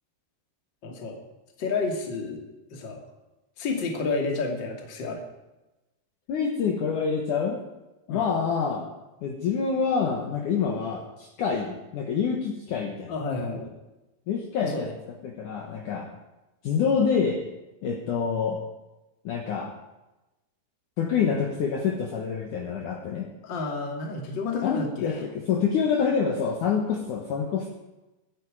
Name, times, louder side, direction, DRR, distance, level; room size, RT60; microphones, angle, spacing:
voice 1, 0.8-1.2 1.6-2.4 2.7-3.0 3.6-5.2 8.1-8.3 13.1-13.7 14.6-14.8 23.4-25.2, left 4 dB, 35° left, 2 dB, 2.3 m, -30 dB
voice 2, 6.3-7.6 8.1-8.9 9.2-13.1 13.6-13.7 14.3-15.0 15.2-16.1 16.6-17.4 17.8-18.6 19.2-19.7 21.0-23.3 24.6-27.7, left 6 dB, 60° left, 1 dB, 2.4 m, -27 dB
24.0 x 9.8 x 4.9 m, 1.0 s
omnidirectional pair, 4.8 m